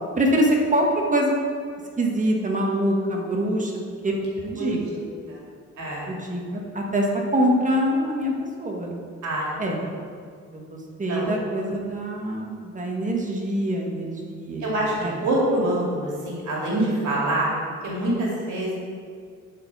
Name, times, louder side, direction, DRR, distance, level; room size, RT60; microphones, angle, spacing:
voice 1, 0.2-1.4 2.0-5.1 6.1-7.1 7.3-8.3 8.6-8.9 9.6-9.8 10.5-15.2, equal, 25° right, 0 dB, 1.6 m, -24 dB
voice 2, 4.6-5.0 5.3-5.4 5.8-6.1 9.2-9.6 11.1-11.3 14.6-14.8 15.2-17.5 17.8-18.7, right 1 dB, 75° right, -4 dB, 2.4 m, -25 dB
11.0 x 4.6 x 4.8 m, 2.1 s
cardioid pair, 90°, 30 cm